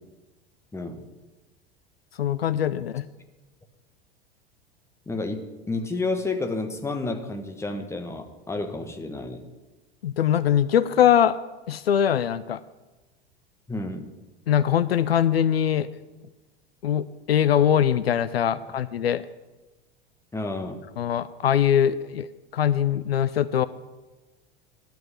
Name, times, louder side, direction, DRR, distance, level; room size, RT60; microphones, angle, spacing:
voice 1, 0.7-1.1 5.1-9.4 13.7-14.1 20.3-20.8, left 3 dB, 10° left, 6 dB, 1.3 m, -30 dB
voice 2, 2.2-3.0 10.0-11.4 11.7-12.6 14.5-15.9 16.8-19.2 21.0-22.3 22.5-23.7, left 9 dB, 75° left, 15 dB, 0.5 m, -22 dB
11.0 x 5.9 x 8.5 m, 1.1 s
figure-of-eight pair, 85°, 30 cm